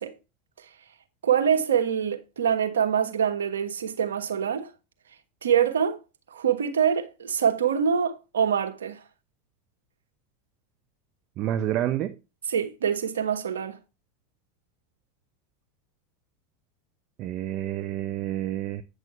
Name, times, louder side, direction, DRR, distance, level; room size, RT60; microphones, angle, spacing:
voice 1, 1.2-4.7 5.4-6.0 6.3-9.0 12.5-13.8, right 8 dB, 90° right, 1.3 m, -25 dB
voice 2, 11.4-12.2 17.2-18.8, right 12 dB, 50° right, 0.8 m, -29 dB
9.2 x 6.3 x 3.1 m
hypercardioid pair, 95°, 0 cm